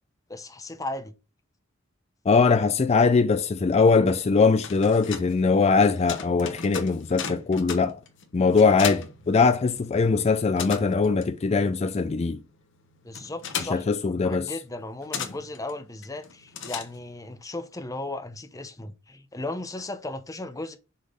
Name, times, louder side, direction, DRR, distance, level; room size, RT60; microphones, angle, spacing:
voice 1, 0.3-1.1 13.0-20.8, left 2 dB, 15° left, 0.8 m, -36 dB
voice 2, 2.3-8.0 8.3-12.4 13.6-14.5, left 4 dB, 30° left, 0.4 m, -21 dB
sound 1, 4.4-10.0 10.2-17.3, left 7 dB, 65° left, 1.1 m, -38 dB
6.4 x 3.7 x 5.1 m
head